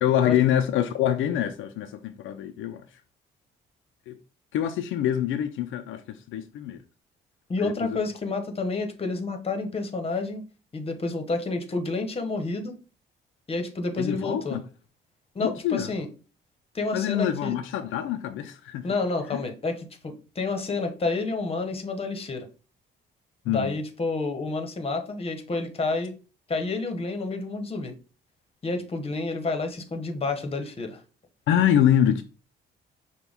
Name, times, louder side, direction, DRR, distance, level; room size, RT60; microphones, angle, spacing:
voice 1, 0.0-2.8 4.1-4.2 4.5-6.8 7.6-8.0 14.0-14.6 15.4-15.9 16.9-18.9 19.3-19.4 23.5-23.7 31.5-32.2, left 10 dB, 80° left, 0.4 m, -25 dB
voice 2, 7.5-10.4 10.7-12.8 13.5-14.6 15.3-16.1 16.7-17.5 18.8-22.5 23.5-26.1 26.5-27.9 28.6-31.0, left 3 dB, 30° left, 1.0 m, -29 dB
6.0 x 2.2 x 3.5 m
cardioid pair, 90°, 20 cm